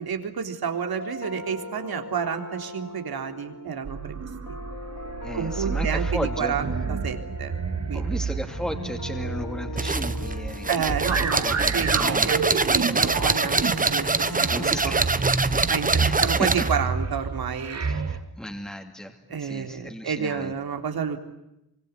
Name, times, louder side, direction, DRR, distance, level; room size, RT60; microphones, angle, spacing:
voice 1, 0.0-4.3 5.3-7.5 7.9-8.2 10.7-13.6 13.9-15.0 15.7-18.0 19.3-21.2, right 7 dB, 80° right, 6 dB, 3.7 m, -30 dB
sound 1, 0.9-15.2, left 3 dB, 70° left, 3.2 m, -40 dB
sound 2, 3.8-18.2, right 5 dB, 45° right, 2.5 m, -30 dB
voice 2, 5.2-6.6 7.9-10.7 11.4-12.3 14.5-15.3 15.5-15.7 16.0-16.5 17.9-20.5, equal, ahead, 3 dB, 2.6 m, -35 dB
sound 3, 9.8-16.8, right 3 dB, 20° right, 1.2 m, -24 dB
27.0 x 25.5 x 8.3 m, 0.87 s
wide cardioid pair, 145°, 36 cm